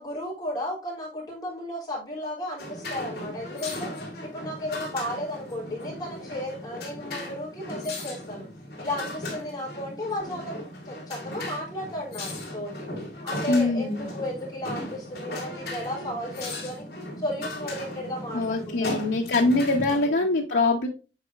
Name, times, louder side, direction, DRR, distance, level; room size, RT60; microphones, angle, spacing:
voice 1, 0.0-3.9 4.2-8.5 8.8-10.5 10.8-12.9 13.2-16.9 17.2-18.9 19.9-20.3, left 1 dB, 20° left, -4 dB, 3.4 m, -34 dB
sound 1, 2.6-20.1, left 1 dB, 60° left, 3.0 m, -37 dB
voice 2, 13.5-14.0 18.3-20.9, left 2 dB, 90° left, 0 dB, 0.9 m, -23 dB
8.3 x 4.8 x 2.4 m, 0.32 s
head